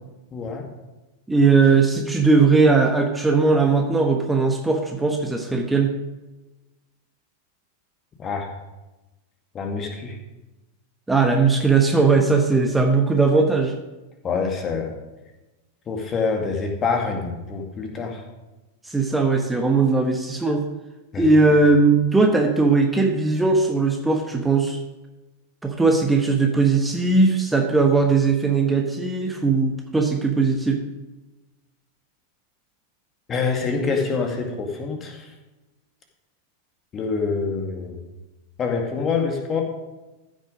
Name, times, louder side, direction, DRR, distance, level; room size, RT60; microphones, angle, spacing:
voice 1, 0.3-0.7 8.2-8.5 9.5-10.2 14.2-14.9 15.9-18.2 21.1-21.2 33.3-35.3 36.9-38.0 38.6-39.6, left 4 dB, 25° left, 2 dB, 2.1 m, -26 dB
voice 2, 1.3-5.9 11.1-13.7 18.8-20.6 21.2-24.8 25.6-30.8, right 4 dB, 5° right, 3 dB, 1.1 m, -19 dB
14.5 x 6.3 x 5.1 m, 1.1 s
figure-of-eight pair, 90°, 0 cm